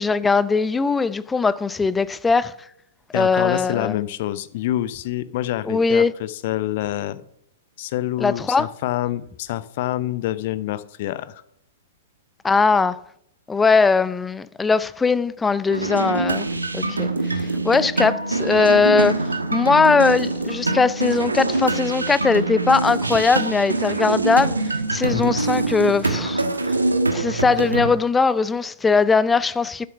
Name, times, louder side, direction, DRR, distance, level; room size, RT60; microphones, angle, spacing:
voice 1, 0.0-2.5 3.1-4.0 5.7-6.1 8.2-8.7 12.4-13.0 13.5-16.5 16.7-17.1 17.4-24.5 24.9-26.4 27.1-29.9, left 4 dB, 10° left, 0.4 m, -20 dB
voice 2, 3.1-7.2 7.8-11.4 25.1-25.4, left 14 dB, 45° left, 0.7 m, -27 dB
sound 1, 15.7-27.9, right 2 dB, 80° right, 1.3 m, -24 dB
12.0 x 6.8 x 5.7 m
figure-of-eight pair, 105°, 0 cm